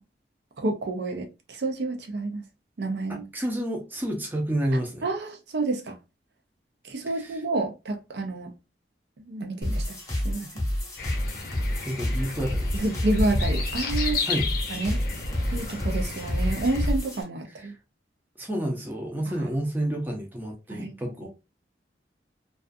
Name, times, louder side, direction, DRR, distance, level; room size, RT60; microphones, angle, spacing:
voice 1, 0.6-2.4 2.8-3.2 4.7-6.0 6.8-8.5 9.2-10.0 10.2-10.5 12.7-14.2 14.7-15.0 15.5-17.7 19.3-19.5 20.7-20.9 21.2-21.3, right 2 dB, 65° right, 0.5 m, -29 dB
voice 2, 3.3-5.0 7.2-7.3 11.8-12.7 14.3-14.5 18.4-21.3, right 1 dB, 10° right, 0.6 m, -29 dB
sound 1, 9.6-17.2, left 1 dB, 20° left, 0.8 m, -29 dB
sound 2, 11.0-16.9, left 2 dB, 55° left, 0.6 m, -31 dB
2.4 x 2.3 x 2.5 m
head